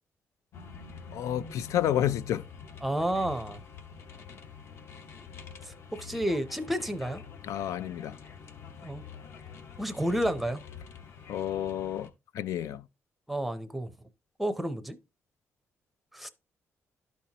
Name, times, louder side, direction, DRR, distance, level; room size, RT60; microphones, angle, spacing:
sound 1, 0.5-12.1, left 6 dB, 55° left, 0.9 m, -46 dB
voice 1, 1.1-2.4 7.4-8.2 11.3-12.1 12.3-12.8, left 11 dB, 80° left, 0.4 m, -30 dB
voice 2, 2.8-3.6 5.6-7.2 8.8-9.0 9.8-10.6 13.3-13.9 14.4-15.0 16.1-16.3, right 1 dB, ahead, 0.6 m, -31 dB
12.5 x 4.4 x 2.8 m
cardioid pair, 165°, 5 cm